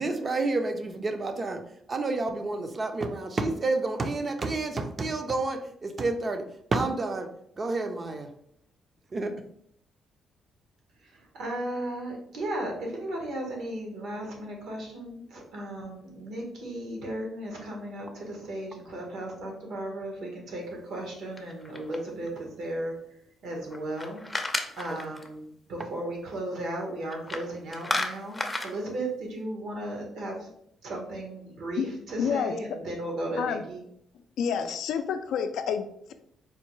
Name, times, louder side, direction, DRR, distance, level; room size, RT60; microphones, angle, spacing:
voice 1, 0.0-1.6 1.9-7.3 7.6-8.3 9.1-9.3 24.9-25.0, right 3 dB, 35° right, 6 dB, 0.5 m, -29 dB
voice 2, 11.0-22.9 23.4-24.2 24.8-30.5 30.8-33.8, right 1 dB, 75° right, 0 dB, 1.2 m, -35 dB
sound 1, 21.4-22.3 23.7-25.3 27.1-27.5 27.7-28.7, left 2 dB, 10° left, 0.5 m, -32 dB
voice 3, 32.2-32.5 33.4-33.6 34.4-36.1, left 7 dB, 80° left, 8 dB, 0.3 m, -29 dB
4.2 x 2.2 x 3.1 m, 0.71 s
cardioid pair, 90°, 0 cm